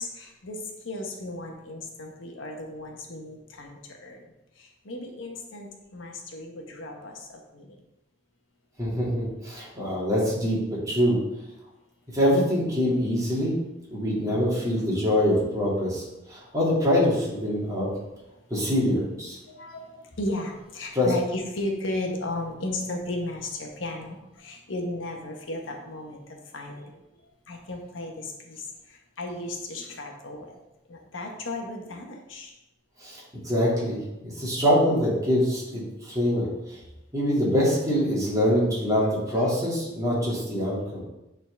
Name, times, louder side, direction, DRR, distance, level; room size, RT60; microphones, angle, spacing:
voice 1, 0.0-7.8 9.5-9.7 19.4-27.0 27.5-30.6 30.9-32.5, left 1 dB, 85° left, 2 dB, 1.1 m, -35 dB
voice 2, 8.8-11.2 12.1-13.6 13.9-17.9 18.5-19.4 20.9-21.1 33.0-36.8 37.1-41.0, equal, 20° right, -6 dB, 2.2 m, -24 dB
8.5 x 4.0 x 3.4 m, 0.93 s
head